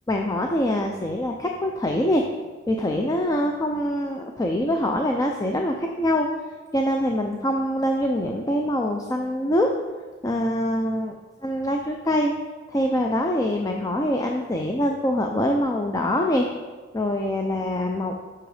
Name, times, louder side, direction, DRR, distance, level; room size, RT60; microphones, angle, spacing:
voice 1, 0.1-2.2 2.7-6.3 6.7-9.7 10.2-11.1 11.4-12.3 12.7-16.5 16.9-18.1, left 1 dB, 20° left, 2 dB, 0.5 m, -24 dB
7.9 x 5.8 x 4.9 m, 1.4 s
head